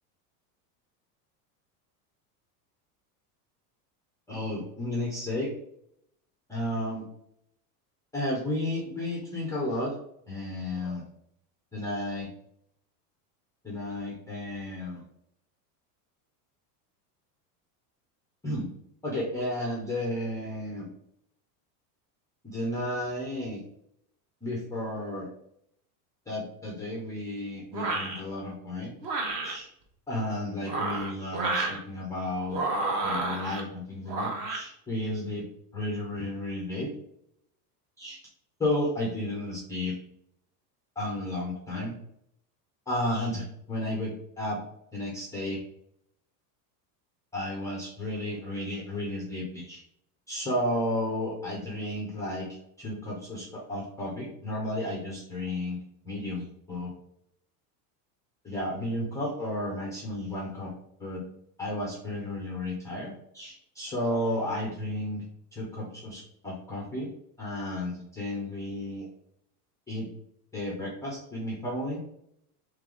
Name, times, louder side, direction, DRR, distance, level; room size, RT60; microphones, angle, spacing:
voice 1, 4.3-5.5 6.5-7.1 8.1-9.9 10.3-11.0 11.7-12.3 13.6-15.0 18.4-18.6 19.0-20.9 22.4-23.6 24.4-25.3 26.3-28.9 29.4-29.7 30.1-32.6 33.0-35.4 35.7-36.9 38.0-38.2 38.6-39.9 41.0-41.9 42.9-44.6 44.9-45.6 47.3-49.8 50.3-55.8 56.1-56.9 58.4-60.7 61.0-61.2 61.6-65.2 65.5-67.1 67.4-69.1 69.9-70.1 70.5-72.0, left 1 dB, 10° left, -3 dB, 0.3 m, -33 dB
sound 1, 27.7-28.2 29.0-29.5 30.6-31.8 32.5-33.6 34.1-34.6, right 3 dB, 40° right, 0.8 m, -30 dB
3.4 x 3.2 x 3.6 m, 0.74 s
supercardioid pair, 150°, 48 cm